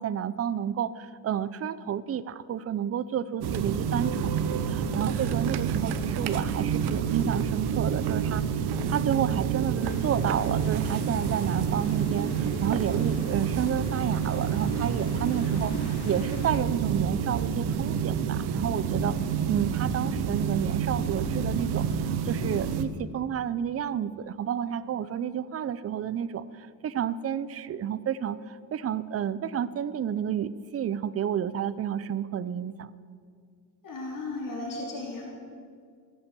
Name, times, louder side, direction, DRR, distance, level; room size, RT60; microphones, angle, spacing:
voice 1, 0.0-8.4 8.9-19.2 19.5-32.9, right 9 dB, 35° right, 16 dB, 0.6 m, -31 dB
sound 1, 3.4-22.8, right 7 dB, 75° right, 1.0 m, -28 dB
sound 2, 9.8-16.6, left 8 dB, 80° left, 1.0 m, -48 dB
voice 2, 33.8-35.3, left 2 dB, 55° left, -3 dB, 3.7 m, -35 dB
14.5 x 8.2 x 8.3 m, 2.1 s
cardioid pair, 85°, 39 cm